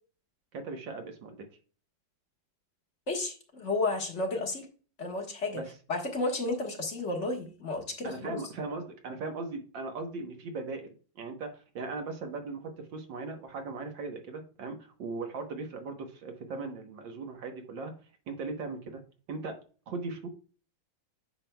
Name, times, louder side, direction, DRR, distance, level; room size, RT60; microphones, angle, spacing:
voice 1, 0.5-1.4 5.5-5.7 8.0-17.9 18.3-19.0 19.3-19.6 19.9-20.3, right 3 dB, 70° right, 5 dB, 1.8 m, -38 dB
voice 2, 3.1-4.7 5.0-5.6 5.9-8.4, left 2 dB, 40° left, 2 dB, 1.5 m, -32 dB
8.8 x 6.1 x 2.3 m, 0.38 s
omnidirectional pair, 2.1 m